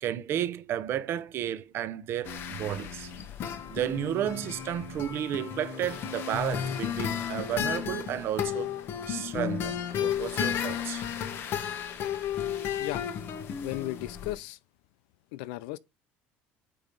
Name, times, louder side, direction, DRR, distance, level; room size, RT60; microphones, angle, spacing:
voice 1, 0.0-3.1 3.7-8.7 9.1-11.0, right 11 dB, 50° right, 0.8 m, -32 dB
sound 1, 2.2-14.3, left 9 dB, 50° left, 1.2 m, -33 dB
voice 2, 13.6-14.6 15.3-15.8, left 17 dB, 90° left, 0.5 m, -35 dB
8.5 x 3.0 x 5.3 m
cardioid pair, 125°, 5 cm